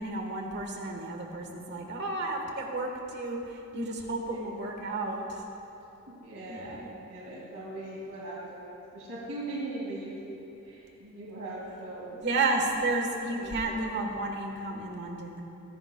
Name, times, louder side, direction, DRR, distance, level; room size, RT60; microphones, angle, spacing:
voice 1, 0.0-5.4 6.4-6.9 12.2-15.4, right 2 dB, 50° right, 2 dB, 1.4 m, -32 dB
voice 2, 6.1-12.3 13.3-13.8, right 2 dB, 70° right, -6 dB, 2.2 m, -40 dB
23.5 x 11.0 x 2.3 m, 2.9 s
head